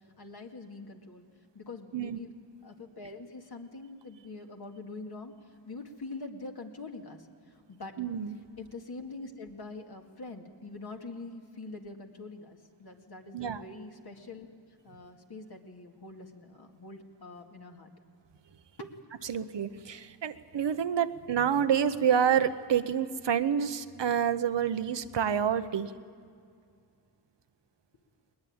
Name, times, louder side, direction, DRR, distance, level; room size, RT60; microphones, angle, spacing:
voice 1, 0.2-1.3 1.5-2.3 2.6-5.3 5.7-8.0 8.6-14.5 14.8-17.9 18.8-18.9, left 3 dB, 60° left, 2 dB, 2.3 m, -44 dB
voice 2, 8.0-8.4 13.3-13.6 19.2-25.9, right 8 dB, 85° right, 11 dB, 1.0 m, -28 dB
20.5 x 20.5 x 8.8 m, 2.3 s
wide cardioid pair, 65°, 42 cm